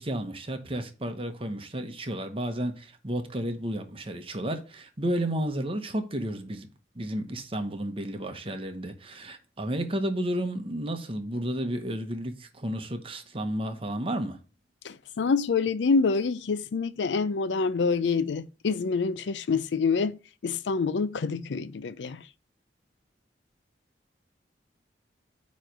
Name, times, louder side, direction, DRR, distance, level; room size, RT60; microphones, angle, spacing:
voice 1, 0.0-6.7 6.9-14.4, right 1 dB, 30° right, 1.0 m, -32 dB
voice 2, 14.8-22.2, left 4 dB, 80° left, 0.5 m, -27 dB
9.0 x 3.2 x 5.2 m
head